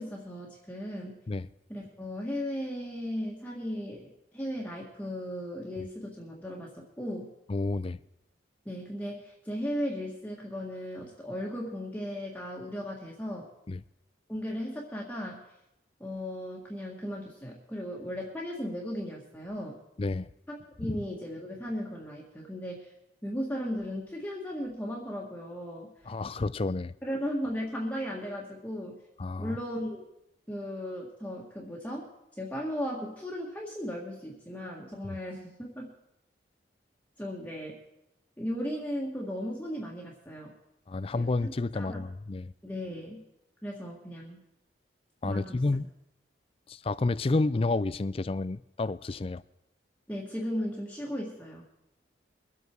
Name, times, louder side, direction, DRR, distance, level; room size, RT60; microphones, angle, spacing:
voice 1, 0.0-1.2 1.7-7.3 8.7-13.5 14.3-15.4 16.0-19.8 20.5-22.9 23.2-25.9 27.0-28.9 29.4-30.0 30.5-32.1 32.4-35.9 37.2-37.8 38.4-40.5 41.1-42.0 42.6-43.2 43.6-44.4 45.2-45.6 50.1-51.6, equal, 10° left, 1.8 m, -36 dB
voice 2, 7.5-8.0 13.7-13.8 20.0-20.3 20.8-21.0 26.1-26.9 29.2-29.6 35.1-35.2 40.9-42.5 45.2-45.9 46.7-49.4, left 3 dB, 30° left, 0.4 m, -30 dB
23.0 x 8.3 x 4.6 m
head